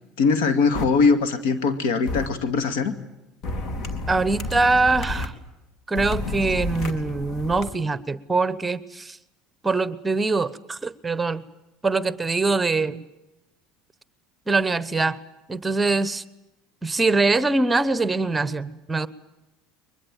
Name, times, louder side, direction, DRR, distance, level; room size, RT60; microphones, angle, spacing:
voice 1, 0.2-2.9, left 4 dB, 80° left, 10 dB, 2.2 m, -21 dB
sound 1, 0.7-0.8 2.1-2.3 3.4-5.3 5.9-7.7, left 2 dB, 55° left, 2.7 m, -30 dB
voice 2, 4.1-5.3 5.9-9.2 9.6-11.4 11.8-13.1 14.5-15.2 15.5-16.2 16.8-19.1, right 3 dB, 15° right, 16 dB, 1.1 m, -23 dB
23.0 x 21.0 x 9.1 m, 0.96 s
supercardioid pair, 105°, 0 cm